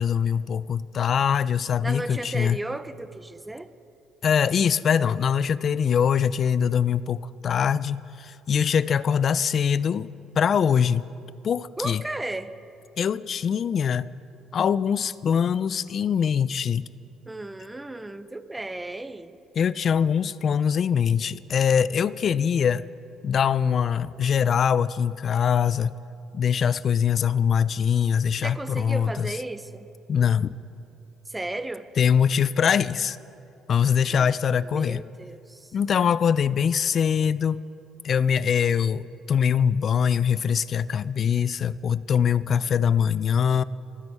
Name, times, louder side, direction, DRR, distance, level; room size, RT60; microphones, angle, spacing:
voice 1, 0.0-2.6 4.2-10.1 10.4-11.1 11.4-12.0 13.0-14.1 14.5-16.9 19.6-22.8 23.2-25.9 26.3-29.3 30.1-30.5 32.0-33.2 33.7-35.0 35.7-37.6 38.0-43.6, left 7 dB, 40° left, 18 dB, 0.3 m, -23 dB
voice 2, 1.8-3.7 11.8-12.5 17.2-19.4 28.4-29.9 31.3-31.9 34.1-34.3 34.6-35.7, right 2 dB, 10° right, 13 dB, 0.5 m, -34 dB
25.0 x 9.6 x 4.7 m, 2.6 s
cardioid pair, 130°, 0 cm